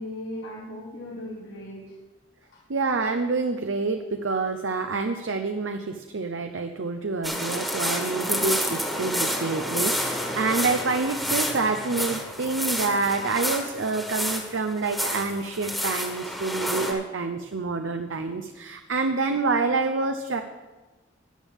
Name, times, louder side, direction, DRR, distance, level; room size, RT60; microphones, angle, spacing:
voice 1, 0.0-2.0 2.5-2.6, left 1 dB, 80° left, -3 dB, 1.6 m, -37 dB
voice 2, 2.7-20.4, right 3 dB, 85° right, 6 dB, 0.7 m, -27 dB
sound 1, 7.2-16.9, equal, ahead, 1.5 m, -29 dB
13.5 x 10.0 x 3.6 m, 1.2 s
head